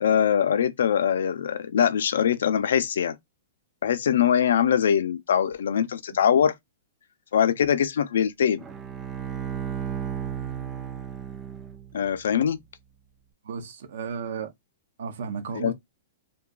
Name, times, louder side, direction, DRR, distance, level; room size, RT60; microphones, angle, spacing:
voice 1, 0.0-3.2 3.8-6.5 7.3-8.6 11.9-12.6 15.5-15.7, left 8 dB, 80° left, 0.3 m, -22 dB
Bowed string instrument, 8.6-12.1, right 8 dB, 15° right, 0.3 m, -34 dB
voice 2, 13.4-14.5 15.0-15.7, right 6 dB, 65° right, 0.6 m, -33 dB
2.6 x 2.3 x 2.3 m
hypercardioid pair, 165°, 0 cm